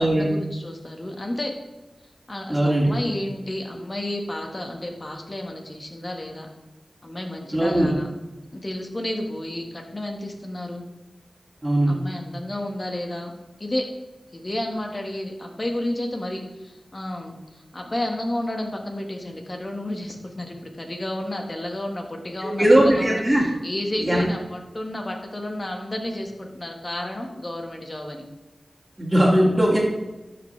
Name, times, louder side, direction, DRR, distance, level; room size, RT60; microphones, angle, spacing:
voice 1, 0.2-1.5 2.3-6.5 7.0-8.1 8.5-10.9 11.9-13.3 13.6-13.9 14.3-28.2, left 1 dB, 40° left, 2 dB, 1.8 m, -31 dB
voice 2, 2.5-2.9 7.5-7.9 11.6-12.0 22.4-23.4 24.0-24.2 29.0-29.8, right 1 dB, 15° right, -8 dB, 2.6 m, -19 dB
12.5 x 6.1 x 3.5 m, 1.1 s
cardioid pair, 45°, 0 cm